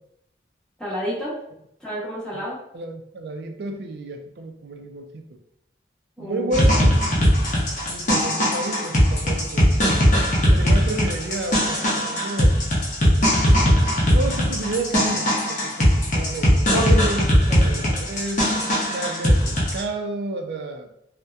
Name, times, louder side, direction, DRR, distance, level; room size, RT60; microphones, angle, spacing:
voice 1, 0.8-1.4 1.8-2.6 6.2-6.7 16.7-16.9 17.5-17.7, equal, 5° left, -8 dB, 0.7 m, -30 dB
voice 2, 2.7-5.4 6.2-7.0 7.9-9.7 10.5-12.6 14.1-17.2 17.6-18.5 18.9-20.9, right 2 dB, 65° right, 5 dB, 0.3 m, -30 dB
sound 1, 6.5-19.8, equal, 45° left, 0.6 m, -19 dB
2.7 x 2.1 x 2.3 m, 0.77 s
head